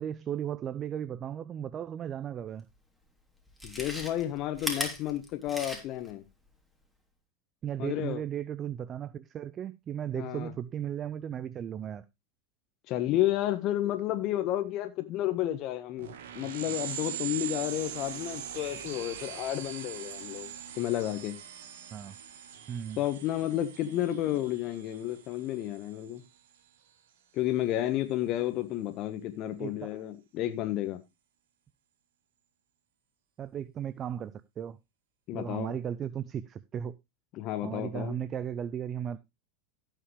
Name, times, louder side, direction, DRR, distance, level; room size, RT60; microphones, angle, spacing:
voice 1, 0.0-2.7 7.6-12.0 21.9-22.2 22.7-23.0 29.6-30.0 33.4-34.8 35.3-36.9 37.6-39.2, right 9 dB, 35° right, 0.5 m, -36 dB
Chewing mastication, 2.7-2.8 3.5-6.1 6.5-6.6, left 1 dB, 5° right, 3.0 m, -37 dB
voice 2, 3.6-6.2 7.8-8.2 10.1-10.5 12.9-20.5 20.7-21.4 23.0-26.2 27.3-31.0 35.3-35.7 37.3-38.2, left 13 dB, 50° left, 1.3 m, -31 dB
sound 1, 16.0-26.1, right 9 dB, 70° right, 1.5 m, -42 dB
16.5 x 5.7 x 3.2 m
hypercardioid pair, 95°, 0 cm